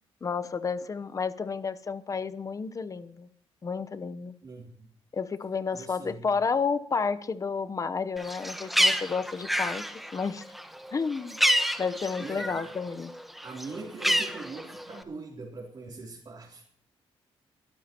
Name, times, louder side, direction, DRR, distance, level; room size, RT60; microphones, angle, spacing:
voice 1, 0.2-3.3 3.6-4.3 5.1-9.8 10.1-10.4 10.9-11.4 11.8-13.1, left 5 dB, 35° left, 0.9 m, -31 dB
voice 2, 4.4-4.9 5.7-6.3 12.2-12.8 13.4-16.6, right 3 dB, 45° right, 3.4 m, -42 dB
Bird, 8.2-12.8 13.1-15.0, equal, ahead, 1.1 m, -28 dB
22.5 x 13.0 x 3.0 m
cardioid pair, 110°, 10 cm